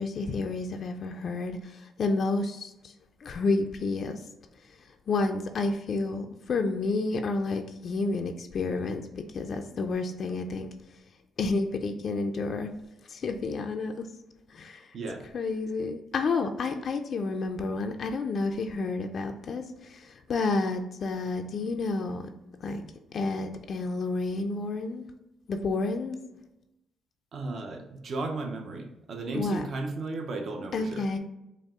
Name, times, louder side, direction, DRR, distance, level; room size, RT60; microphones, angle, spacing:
voice 1, 0.0-2.7 3.2-4.2 5.1-9.0 9.3-10.7 11.4-12.7 13.1-14.1 14.5-14.9 15.3-19.6 19.9-22.3 22.6-22.8 23.1-25.0 25.5-26.2 29.3-29.6 30.7-31.2, left 3 dB, 55° left, 5 dB, 0.3 m, -30 dB
voice 2, 14.9-15.2 27.3-31.1, right 3 dB, 55° right, 3 dB, 0.6 m, -35 dB
5.2 x 2.0 x 3.5 m, 0.90 s
cardioid pair, 90°, 0 cm